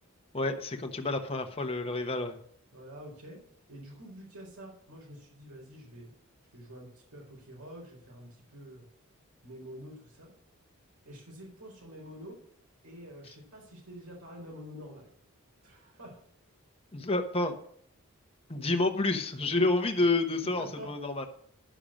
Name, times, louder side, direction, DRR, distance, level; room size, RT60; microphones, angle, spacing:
voice 1, 0.3-2.4 16.9-17.5 18.5-21.3, left 2 dB, 25° left, 4 dB, 1.0 m, -29 dB
voice 2, 2.7-6.1 6.5-8.8 9.4-10.3 11.0-12.4 12.8-15.1 15.6-16.2 20.4-20.9, equal, 90° right, -2 dB, 4.2 m, -47 dB
10.0 x 6.7 x 6.4 m, 0.66 s
head